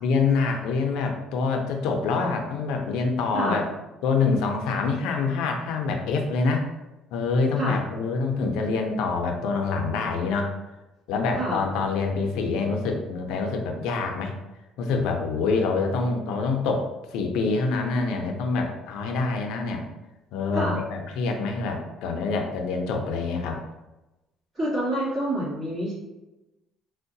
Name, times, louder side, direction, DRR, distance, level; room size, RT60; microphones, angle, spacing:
voice 1, 0.0-3.6 4.0-6.6 7.1-10.5 11.1-14.3 14.8-19.8 20.3-23.6, left 4 dB, 85° left, 3 dB, 0.5 m, -26 dB
voice 2, 24.5-25.9, right 1 dB, 30° right, -7 dB, 1.5 m, -27 dB
4.5 x 2.1 x 2.6 m, 1.0 s
cardioid pair, 140°, 0 cm